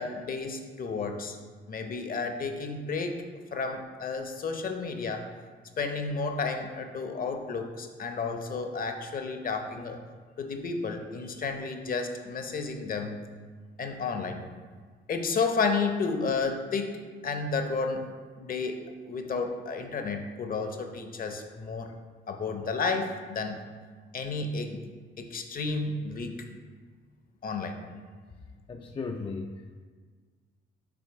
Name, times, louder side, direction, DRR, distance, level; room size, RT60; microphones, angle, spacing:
voice 1, 0.0-1.4 1.7-3.2 3.5-5.2 5.8-10.0 10.4-13.2 13.8-14.4 15.1-18.0 18.4-18.8 19.0-21.9 22.3-23.6 24.1-24.8 25.2-26.5 27.4-27.8, left 4 dB, 45° left, 5 dB, 0.7 m, -32 dB
voice 2, 28.7-29.8, left 4 dB, 25° left, 3 dB, 0.3 m, -36 dB
6.2 x 3.4 x 4.6 m, 1.5 s
cardioid pair, 90°, 20 cm